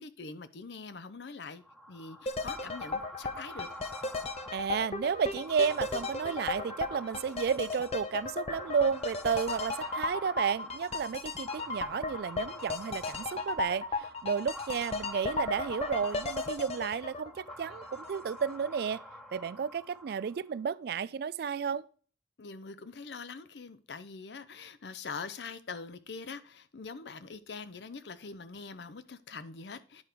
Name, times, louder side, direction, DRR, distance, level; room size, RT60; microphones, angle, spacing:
voice 1, 0.0-1.6 1.9-3.7 22.4-30.0, left 4 dB, 70° left, 0.6 m, -43 dB
sound 1, 1.6-20.5, equal, ahead, 0.9 m, -47 dB
sound 2, 2.3-18.2 18.5-18.6, left 3 dB, 35° left, 0.6 m, -36 dB
voice 2, 4.5-19.0 19.3-21.8, right 6 dB, 60° right, 0.3 m, -32 dB
9.7 x 4.5 x 5.0 m
head